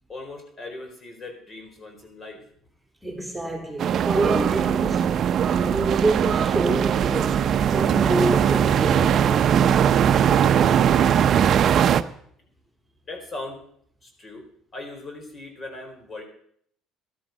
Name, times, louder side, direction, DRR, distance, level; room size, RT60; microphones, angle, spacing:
voice 1, 0.1-2.4 13.0-13.6 14.0-14.4 14.7-16.2, left 2 dB, 40° left, 4.3 m, -39 dB
voice 2, 3.0-5.2 5.5-9.7, right 2 dB, 5° right, 3.3 m, -27 dB
sound 1, 3.8-12.0, right 9 dB, 55° right, 0.7 m, -20 dB
13.5 x 12.5 x 5.5 m
hypercardioid pair, 70°, 0 cm